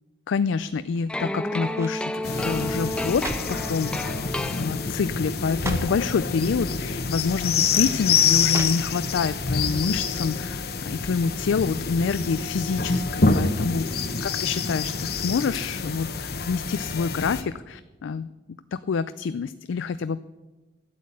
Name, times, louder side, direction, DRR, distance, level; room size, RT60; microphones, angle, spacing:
voice 1, 0.3-4.1 4.5-13.9 14.2-18.3 18.7-20.2, left 5 dB, 90° left, 13 dB, 0.4 m, -27 dB
sound 1, 0.9-1.3 1.7-2.1 2.9-3.7 4.5-4.7 5.0-5.1 5.5-6.1 7.0-7.1 8.5-9.2 9.6-9.7, right 1 dB, 15° right, 0.8 m, -36 dB
sound 2, 1.1-5.2, left 1 dB, 5° left, 0.4 m, -31 dB
sound 3, 2.2-17.4, left 5 dB, 55° left, 0.9 m, -27 dB
12.5 x 8.5 x 8.2 m, 1.2 s
head